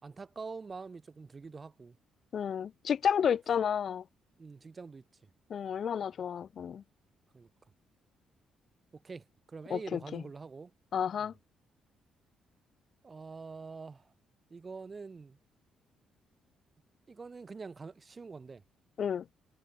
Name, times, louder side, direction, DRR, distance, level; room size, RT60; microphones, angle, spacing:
voice 1, 0.0-2.0 4.4-5.3 7.3-7.5 8.9-10.7 11.2-11.3 13.0-14.1 14.5-15.4 17.1-18.6, right 4 dB, 30° right, 4.1 m, -45 dB
voice 2, 2.3-4.0 5.5-6.8 9.7-10.2 10.9-11.3 19.0-19.2, left 8 dB, 55° left, 1.4 m, -31 dB
cardioid pair, 90°, 0 cm